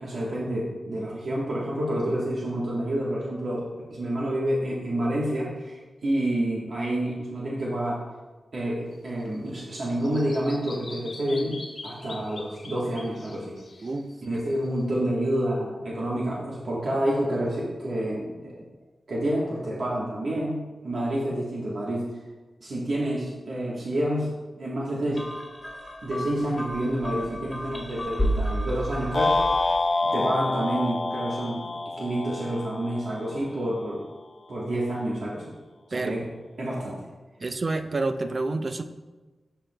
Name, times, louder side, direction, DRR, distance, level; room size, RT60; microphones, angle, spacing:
voice 1, 0.0-8.0 8.5-13.6 14.2-18.6 19.1-22.0 22.6-25.2 26.0-29.3 30.1-31.7 32.0-34.0 34.5-35.5 35.9-36.3 36.6-37.1, right 1 dB, 70° right, -5 dB, 1.2 m, -28 dB
Bird vocalization bird call bird song, 8.9-14.8, left 3 dB, 65° left, 0.9 m, -44 dB
sound 1, 25.1-29.9, equal, 15° left, 1.1 m, -32 dB
sound 2, 29.1-33.5, left 3 dB, 45° left, 0.4 m, -27 dB
voice 2, 37.4-38.8, right 3 dB, 45° right, 8 dB, 0.4 m, -28 dB
11.5 x 4.5 x 2.2 m, 1.2 s
wide cardioid pair, 100°, 0 cm